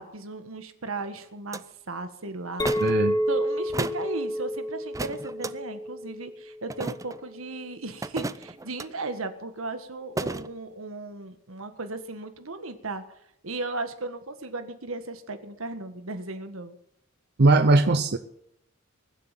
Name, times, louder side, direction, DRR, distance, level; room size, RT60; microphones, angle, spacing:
voice 1, 0.0-13.0 13.4-16.8, right 2 dB, 85° right, 9 dB, 1.7 m, -36 dB
sound 1, 1.5-1.6 2.6-3.0 3.7-4.1 4.9-5.5 6.7-7.2 8.0-8.9 10.2-10.5, right 2 dB, 15° right, 0.5 m, -33 dB
Chink clink, 2.6-7.1, equal, 20° left, 1.3 m, -30 dB
voice 2, 2.8-3.2 17.4-18.2, right 2 dB, 55° right, 9 dB, 0.7 m, -19 dB
22.0 x 7.9 x 7.6 m, 0.75 s
head